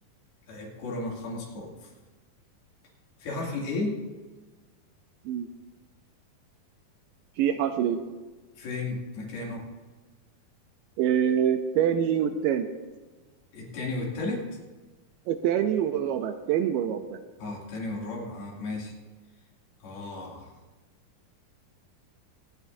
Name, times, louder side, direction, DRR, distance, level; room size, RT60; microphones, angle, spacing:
voice 1, 0.5-1.7 3.2-4.0 8.6-9.7 13.5-14.4 17.4-18.9 19.8-20.5, left 2 dB, 85° left, -3 dB, 4.5 m, -34 dB
voice 2, 7.4-8.0 11.0-12.7 15.3-17.2, right 9 dB, 80° right, 8 dB, 2.1 m, -25 dB
26.5 x 9.3 x 2.7 m, 1.3 s
omnidirectional pair, 4.3 m